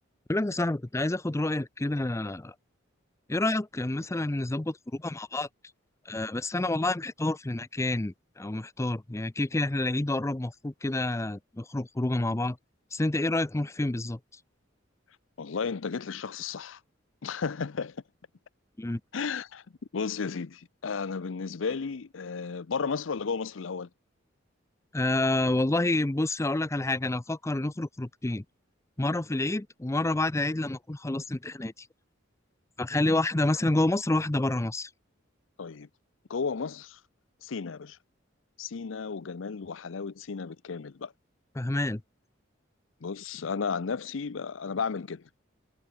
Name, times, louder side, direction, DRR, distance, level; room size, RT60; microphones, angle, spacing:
voice 1, 0.3-2.5 3.3-5.5 6.1-12.6 12.9-14.2 18.8-19.0 24.9-28.4 29.0-31.9 32.8-34.9 41.6-42.0, left 2 dB, 15° left, 0.5 m, -28 dB
voice 2, 15.4-16.8 17.2-18.0 19.1-19.6 19.9-23.9 35.6-35.9 36.3-37.0 37.4-38.0 38.6-41.1 43.0-45.3, left 5 dB, 80° left, 0.6 m, -33 dB
head